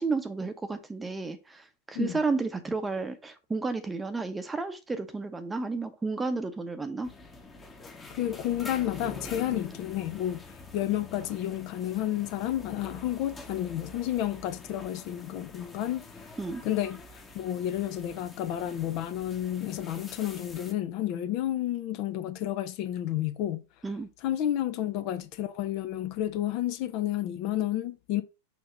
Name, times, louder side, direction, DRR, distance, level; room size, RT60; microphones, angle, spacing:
voice 1, 0.0-7.1 16.4-16.6 23.8-24.1, right 3 dB, 10° right, 0.8 m, -32 dB
sound 1, 7.0-20.7, left 2 dB, 15° left, 1.0 m, -46 dB
voice 2, 8.1-16.3 16.6-23.6 24.2-28.2, left 12 dB, 40° left, 0.5 m, -31 dB
6.3 x 2.8 x 5.5 m
figure-of-eight pair, 90°, 0 cm